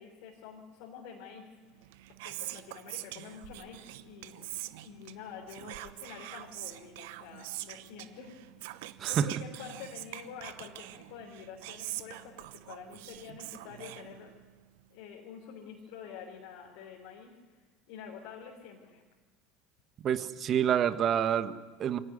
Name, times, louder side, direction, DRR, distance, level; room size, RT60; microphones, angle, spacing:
voice 1, 0.0-1.9 2.2-8.8 9.1-14.3 14.9-17.6 17.9-19.0, left 7 dB, 70° left, -1 dB, 3.7 m, -48 dB
Whispering, 1.7-14.6, right 16 dB, 70° right, 1.0 m, -44 dB
voice 2, 20.0-22.0, right 9 dB, 45° right, 11 dB, 1.5 m, -28 dB
23.5 x 18.0 x 9.6 m, 1.3 s
hypercardioid pair, 75°, 0 cm